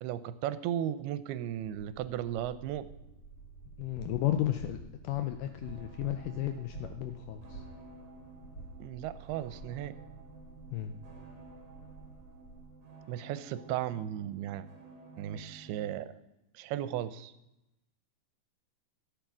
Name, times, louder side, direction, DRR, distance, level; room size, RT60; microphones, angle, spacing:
voice 1, 0.0-2.9 8.8-10.0 13.1-14.7 15.2-16.2 16.5-17.3, right 11 dB, 85° right, 13 dB, 2.6 m, -35 dB
sound 1, 1.6-12.6, right 2 dB, 30° left, 2.4 m, -50 dB
voice 2, 3.8-4.8 5.0-7.6 10.7-11.0, left 12 dB, 85° left, 8 dB, 1.9 m, -33 dB
sound 2, 5.6-15.9, right 4 dB, 30° right, 3.0 m, -53 dB
14.5 x 9.0 x 6.1 m, 0.88 s
omnidirectional pair, 4.6 m